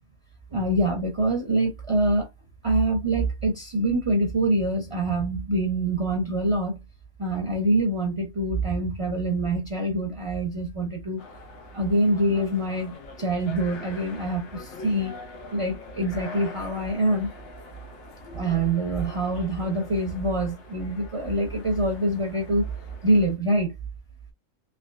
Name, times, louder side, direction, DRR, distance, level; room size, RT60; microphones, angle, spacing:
voice 1, 0.5-2.3 2.6-6.8 7.2-11.2 11.7-15.1 15.5-17.3 18.3-22.7 23.0-23.7, right 1 dB, 30° right, 0.7 m, -25 dB
sound 1, 11.2-23.4, left 3 dB, 65° left, 1.1 m, -44 dB
3.5 x 3.0 x 2.4 m
omnidirectional pair, 1.3 m